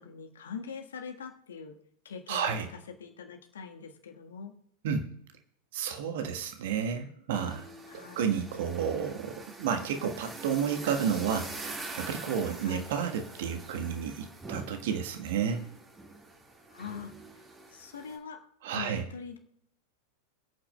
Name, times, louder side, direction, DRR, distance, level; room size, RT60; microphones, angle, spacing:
voice 1, 0.0-1.8 2.0-2.5 3.0-4.5 7.9-8.3 12.6-12.9 16.7-17.1 17.7-18.4 18.7-19.4, left 6 dB, 65° left, 4 dB, 1.4 m, -43 dB
voice 2, 2.3-2.7 4.8-5.1 5.7-7.6 7.9-15.7 18.6-19.0, right 7 dB, 55° right, 5 dB, 1.3 m, -31 dB
sound 1, 7.3-18.2, right 3 dB, 15° right, 1.9 m, -45 dB
26.5 x 8.8 x 2.3 m, 0.74 s
figure-of-eight pair, 90°, 0 cm